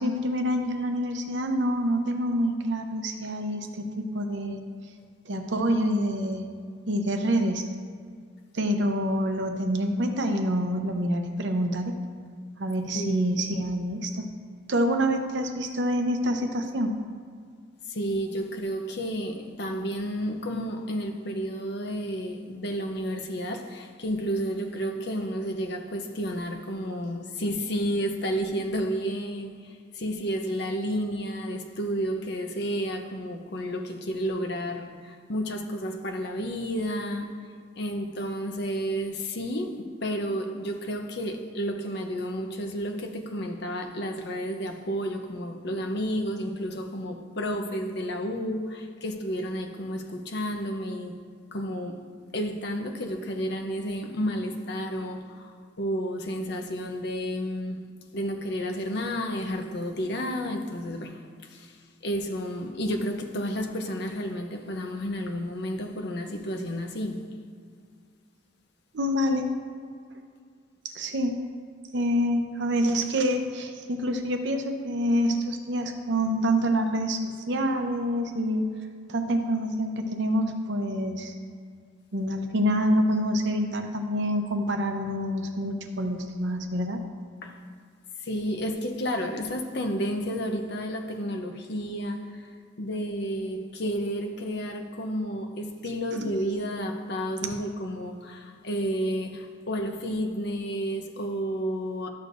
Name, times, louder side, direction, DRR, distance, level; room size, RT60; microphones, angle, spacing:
voice 1, 0.0-4.6 5.3-6.5 6.9-7.7 8.5-11.9 12.6-14.3 14.7-16.9 68.9-69.5 70.9-71.3 71.9-77.2 77.5-78.6 79.1-81.3 82.1-87.0, equal, 65° right, 5 dB, 0.8 m, -26 dB
voice 2, 12.9-13.3 17.9-37.3 37.8-51.2 51.5-52.0 52.3-57.8 58.1-61.8 62.0-67.2 87.4-87.6 88.2-92.5 92.8-102.1, equal, 60° left, 4 dB, 0.8 m, -31 dB
12.5 x 6.5 x 2.6 m, 2.1 s
head